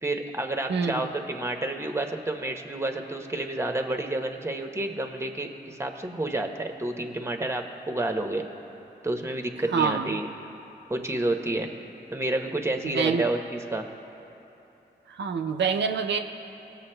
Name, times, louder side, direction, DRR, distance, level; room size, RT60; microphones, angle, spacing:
voice 1, 0.0-8.4 9.0-10.3 10.9-11.7 12.1-13.9, right 2 dB, 15° right, 4 dB, 0.8 m, -29 dB
voice 2, 0.7-1.0 9.7-10.2 12.8-13.3 15.1-16.2, right 6 dB, 85° right, 4 dB, 0.4 m, -26 dB
18.5 x 6.7 x 2.2 m, 2.9 s
cardioid pair, 45°, 18 cm